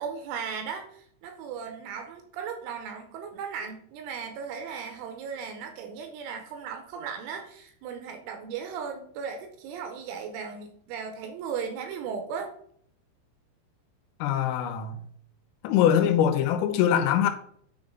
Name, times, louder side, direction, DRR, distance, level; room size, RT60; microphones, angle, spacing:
voice 1, 0.0-12.5, right 6 dB, 80° right, 3.0 m, -36 dB
voice 2, 14.2-15.0 15.6-17.3, left 9 dB, 85° left, 3.3 m, -23 dB
9.4 x 3.9 x 3.7 m
omnidirectional pair, 6.0 m